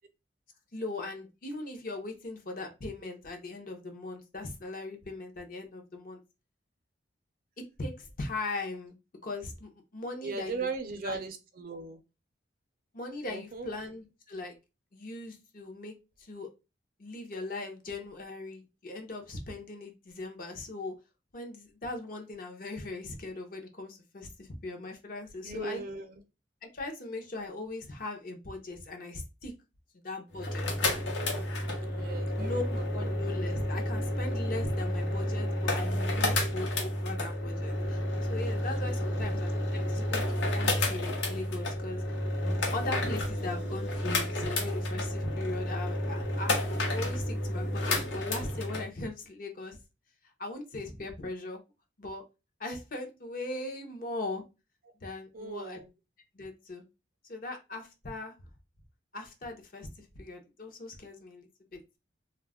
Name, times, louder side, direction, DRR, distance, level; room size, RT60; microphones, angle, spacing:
voice 1, 0.7-6.2 7.6-9.0 9.2-10.7 11.0-11.2 12.9-14.5 14.9-16.5 17.0-21.0 21.3-25.8 26.6-29.5 29.9-30.7 32.4-38.0 38.3-42.2 42.7-49.8 50.4-51.6 52.0-52.2 52.6-54.4 55.0-55.8 56.3-56.9 57.3-58.3 59.1-61.8, left 2 dB, 45° left, 4 dB, 0.6 m, -39 dB
voice 2, 10.2-12.0 13.3-13.7 25.4-26.2 31.8-32.6 32.9-33.1 39.0-39.3 55.3-55.9, right 3 dB, 50° right, 7 dB, 0.5 m, -38 dB
sound 1, 30.3-48.8, left 1 dB, 75° left, 0.8 m, -31 dB
2.2 x 2.0 x 3.5 m, 0.27 s
head